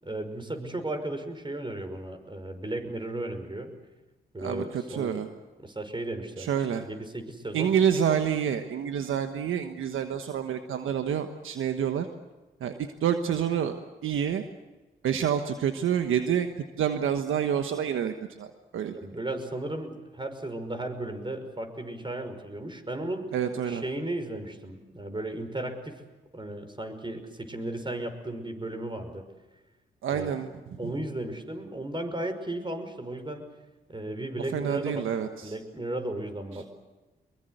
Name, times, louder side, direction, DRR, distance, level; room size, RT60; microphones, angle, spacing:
voice 1, 0.0-3.7 4.3-5.3 5.6-6.5 6.8-7.8 18.9-23.3 23.6-26.0 26.3-29.2 30.1-30.4 30.8-33.4 33.9-35.0 35.4-36.7, right 1 dB, 25° right, 7 dB, 5.6 m, -35 dB
voice 2, 4.4-5.3 6.4-6.8 7.5-12.1 12.6-14.4 15.0-16.5 16.8-18.1 18.4-18.9 23.3-23.8 30.0-30.9 34.5-35.5, right 8 dB, 75° right, 7 dB, 1.3 m, -28 dB
23.5 x 22.5 x 8.0 m, 1.2 s
supercardioid pair, 45°, 21 cm